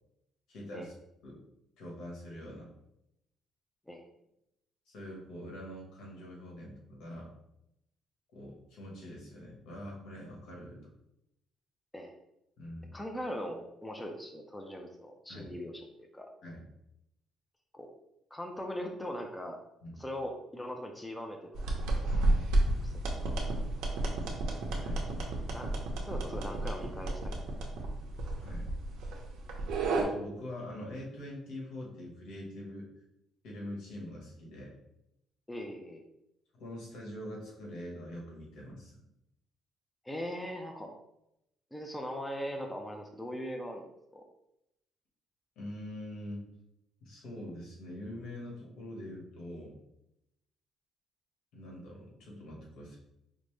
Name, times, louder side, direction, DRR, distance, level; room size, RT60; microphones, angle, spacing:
voice 1, 0.5-0.9 1.2-1.4 1.8-2.7 4.9-7.3 8.3-10.8 12.6-13.0 15.3-15.5 16.4-16.6 19.8-20.0 22.1-22.5 24.7-25.1 28.4-28.7 29.9-32.9 33.4-34.7 36.5-38.9 45.6-46.5 47.0-49.8 51.5-53.0, left 1 dB, 85° left, -2 dB, 1.3 m, -44 dB
voice 2, 12.9-16.3 17.7-17.9 18.3-19.6 20.0-21.8 22.8-23.0 25.5-27.3 35.5-36.0 40.0-40.9 41.7-44.3, equal, 10° left, 3 dB, 0.4 m, -40 dB
sound 1, 21.5-30.0, right 2 dB, 85° right, 0.8 m, -32 dB
5.2 x 2.0 x 3.2 m, 0.83 s
cardioid pair, 155°, 0 cm